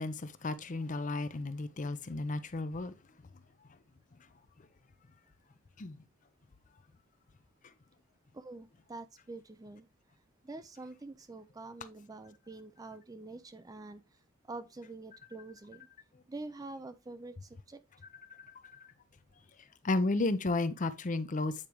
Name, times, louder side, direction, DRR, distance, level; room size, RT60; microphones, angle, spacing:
voice 1, 0.0-2.9 5.8-6.0 19.8-21.5, left 2 dB, 35° left, 0.6 m, -33 dB
voice 2, 8.3-9.9 10.4-14.0 14.5-15.9 16.3-17.8, right 2 dB, 15° right, 0.4 m, -46 dB
8.7 x 4.8 x 3.0 m
head